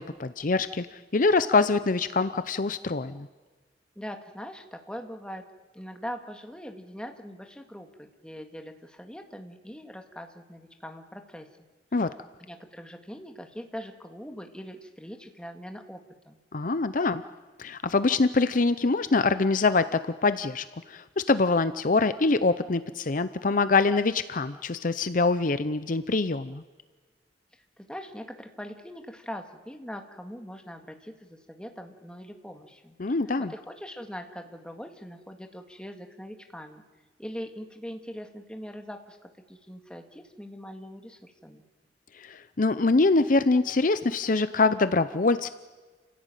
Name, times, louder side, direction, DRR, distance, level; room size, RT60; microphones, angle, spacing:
voice 1, 0.0-3.3 11.9-12.1 16.5-17.2 17.6-26.6 33.0-33.5 42.1-45.5, left 3 dB, 50° left, 12 dB, 0.7 m, -24 dB
voice 2, 4.0-5.4 5.7-11.5 12.5-16.4 27.8-33.0 33.4-36.8 37.2-41.6, equal, 5° left, 4 dB, 2.0 m, -42 dB
29.0 x 16.5 x 9.1 m, 1.3 s
head